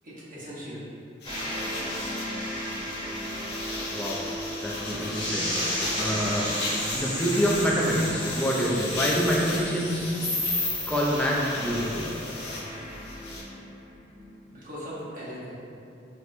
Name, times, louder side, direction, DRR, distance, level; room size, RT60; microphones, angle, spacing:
voice 1, 0.0-0.8 14.5-15.6, equal, 50° right, -9 dB, 0.9 m, -39 dB
sound 1, 1.2-13.4, left 2 dB, 60° left, 0.6 m, -36 dB
sound 2, 1.2-14.2, left 1 dB, 25° left, 0.9 m, -33 dB
voice 2, 3.9-4.2 4.6-6.5 6.9-10.1 10.9-12.1, equal, 10° left, -4 dB, 0.4 m, -27 dB
4.3 x 2.1 x 2.5 m, 2.7 s
head